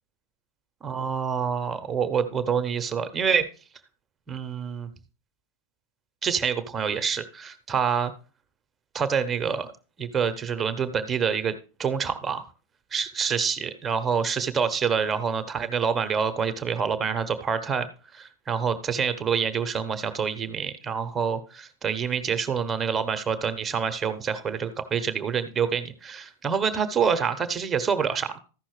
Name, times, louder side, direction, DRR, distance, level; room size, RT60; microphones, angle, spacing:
voice 1, 0.8-3.4 4.3-4.9 6.2-8.1 8.9-9.7 10.0-11.5 11.8-12.4 12.9-28.4, right 6 dB, 20° right, 9 dB, 0.9 m, -27 dB
14.0 x 5.9 x 3.2 m, 0.35 s
figure-of-eight pair, 90°, 0 cm